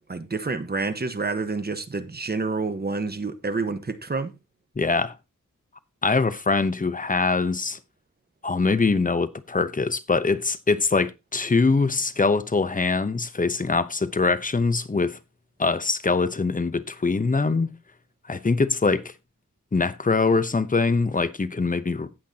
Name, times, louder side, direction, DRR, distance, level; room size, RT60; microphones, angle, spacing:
voice 1, 0.1-4.3, right 3 dB, 30° right, 1.3 m, -28 dB
voice 2, 4.8-5.1 6.0-7.8 8.4-15.2 15.6-17.7 18.3-19.1 19.7-22.1, left 4 dB, 25° left, 0.8 m, -23 dB
17.5 x 5.9 x 2.8 m
wide cardioid pair, 110°, 32 cm